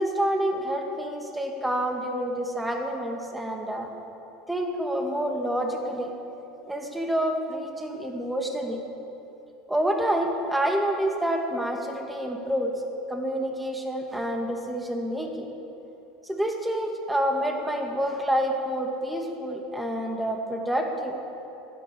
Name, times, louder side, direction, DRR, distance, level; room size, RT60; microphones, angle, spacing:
voice 1, 0.0-3.9 4.5-6.1 6.7-8.8 9.7-12.7 13.1-15.5 16.3-21.2, right 1 dB, 5° right, 2 dB, 2.2 m, -28 dB
15.5 x 11.5 x 7.1 m, 2.9 s
hypercardioid pair, 85°, 0 cm